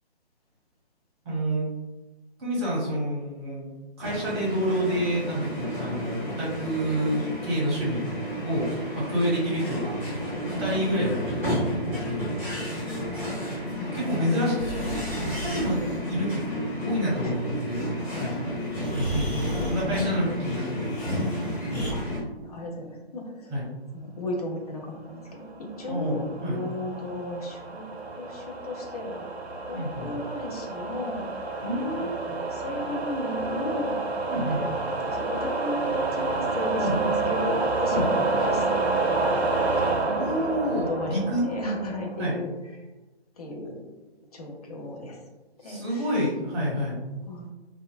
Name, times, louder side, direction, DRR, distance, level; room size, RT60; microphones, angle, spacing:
voice 1, 1.2-1.6 2.4-3.7 4.0-8.7 8.9-10.0 10.5-11.4 11.7-12.3 13.9-14.8 15.2-16.4 16.8-17.9 18.2-18.4 18.9-20.9 23.5-23.7 25.9-26.6 29.7-30.1 31.6-32.2 34.3-34.6 36.8-37.0 37.9-38.1 40.0-41.5 42.2-42.4 45.6-47.0, equal, 25° right, -6 dB, 0.8 m, -28 dB
sound 1, 4.0-22.2, equal, 5° right, 1.2 m, -32 dB
Breathing, 10.9-11.9 14.5-16.0 18.2-18.3 18.8-19.9 20.8-21.9, equal, 75° left, 1.0 m, -35 dB
voice 2, 22.4-23.5 23.9-27.8 28.2-29.3 29.7-31.3 32.0-34.0 34.5-34.7 35.0-39.3 39.9-40.5 40.7-42.5 43.4-43.8 44.3-45.2 45.6-46.1 47.3-47.5, left 1 dB, 40° left, 0 dB, 0.4 m, -35 dB
sound 2, 25.7-42.2, right 3 dB, 80° right, 0.5 m, -29 dB
2.6 x 2.2 x 2.5 m, 1.1 s
figure-of-eight pair, 140°, 32 cm